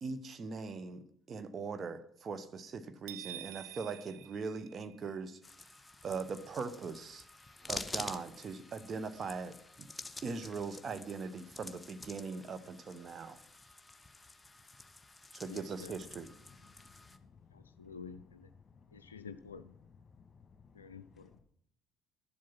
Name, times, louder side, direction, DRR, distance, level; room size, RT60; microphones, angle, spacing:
voice 1, 0.0-5.4 6.0-7.2 7.7-9.9 10.2-13.4 15.3-16.3, right 4 dB, 40° right, 10 dB, 0.9 m, -41 dB
sound 1, 3.1-5.3, right 14 dB, 65° right, 0.5 m, -48 dB
sound 2, 5.4-17.2, left 2 dB, 15° left, 0.9 m, -48 dB
voice 2, 15.5-15.9 17.5-18.5 18.9-19.7 20.7-21.4, left 5 dB, 80° left, 11 dB, 0.4 m, -50 dB
voice 3, 16.7-17.9 18.6-19.3 20.1-21.4, left 5 dB, 35° left, 6 dB, 1.8 m, -61 dB
11.5 x 7.5 x 5.8 m, 0.69 s
figure-of-eight pair, 55°, 0 cm